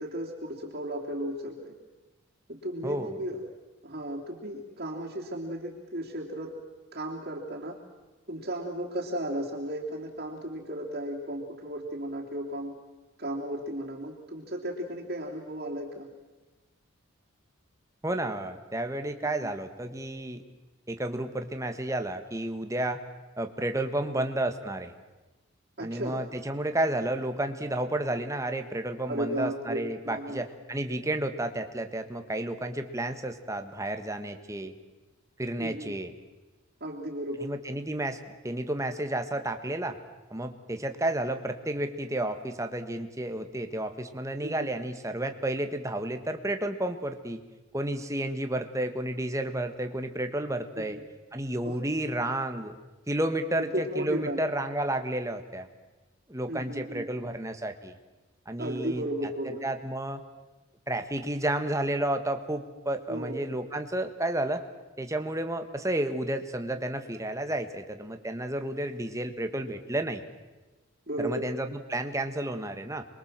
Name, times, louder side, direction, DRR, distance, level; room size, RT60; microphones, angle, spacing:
voice 1, 0.0-1.7 2.5-3.4 3.8-6.5 6.9-7.8 8.3-12.7 13.2-16.1 19.2-19.5 24.0-24.2 25.8-26.2 29.1-30.4 35.6-36.0 36.8-37.5 44.4-44.7 50.7-51.0 51.6-51.8 53.6-54.4 56.5-57.1 58.6-59.6 63.1-63.4 71.1-71.5, right 1 dB, 45° right, -4 dB, 3.2 m, -35 dB
voice 2, 2.8-3.2 18.0-20.4 20.9-23.0 23.4-24.9 25.8-34.7 35.4-36.1 37.4-38.2 38.4-40.0 40.3-47.4 47.7-51.0 51.3-52.8 53.1-55.7 56.3-57.9 58.4-59.0 59.6-60.2 60.9-64.6 65.0-70.2 71.2-73.0, right 1 dB, 15° right, 7 dB, 1.5 m, -31 dB
27.0 x 22.5 x 7.5 m, 1.1 s
head